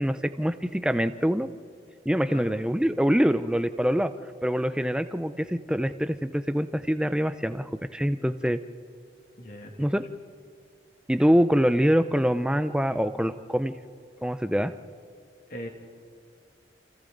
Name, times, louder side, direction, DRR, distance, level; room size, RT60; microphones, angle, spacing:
voice 1, 0.0-1.5 2.0-4.1 4.4-8.6 9.8-10.0 11.1-13.7 14.2-14.7, equal, 5° right, 10 dB, 0.6 m, -24 dB
voice 2, 9.4-9.8 15.5-15.7, equal, 50° left, 2 dB, 2.7 m, -39 dB
29.5 x 28.5 x 4.0 m, 2.3 s
head